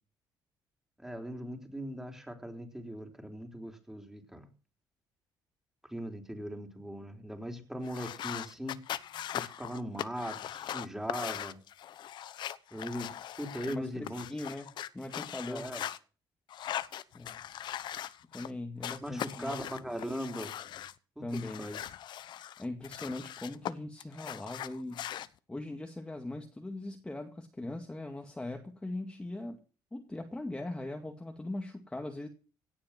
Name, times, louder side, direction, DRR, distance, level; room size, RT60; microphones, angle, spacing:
voice 1, 1.0-4.5 5.9-8.8 9.3-11.6 12.7-14.3 15.5-15.8 19.0-20.5 21.2-21.8, equal, 5° right, 3.9 m, -39 dB
sound 1, 7.8-16.0 16.5-18.5 18.8-20.9 21.3-23.7 24.0-25.3, left 11 dB, 65° left, 0.9 m, -40 dB
voice 2, 13.7-15.7 17.1-17.4 18.3-19.5 21.2-21.7 22.6-25.1 25.5-29.6 29.9-32.3, left 2 dB, 10° left, 2.0 m, -40 dB
17.5 x 8.7 x 6.0 m
cardioid pair, 100°, 8 cm